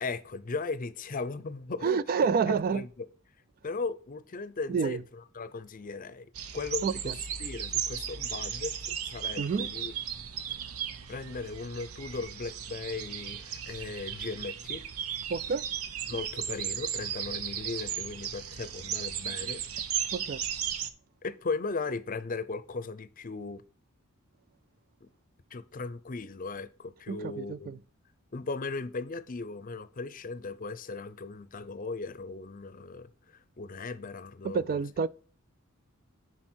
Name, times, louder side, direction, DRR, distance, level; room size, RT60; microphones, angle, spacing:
voice 1, 0.0-2.0 2.5-3.1 3.6-9.9 11.1-14.8 16.1-19.6 21.2-23.6 25.0-25.1 25.5-27.8 28.3-33.1 33.6-34.8, left 4 dB, 40° left, 0.6 m, -37 dB
voice 2, 1.8-2.8 4.7-5.0 6.8-7.1 9.4-9.7 15.3-15.6 20.1-20.4 27.1-27.8 34.5-35.1, right 5 dB, 45° right, 0.3 m, -28 dB
sound 1, 6.4-20.9, right 9 dB, 90° right, 0.8 m, -36 dB
10.5 x 4.3 x 4.4 m
head